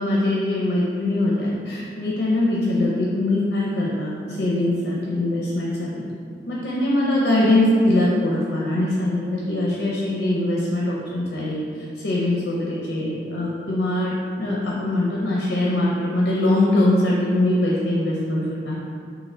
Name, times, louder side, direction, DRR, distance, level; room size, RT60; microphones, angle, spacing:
voice 1, 0.0-6.1 6.5-11.6 12.0-18.9, left 1 dB, 85° left, -4 dB, 0.6 m, -22 dB
3.2 x 2.8 x 3.7 m, 2.3 s
head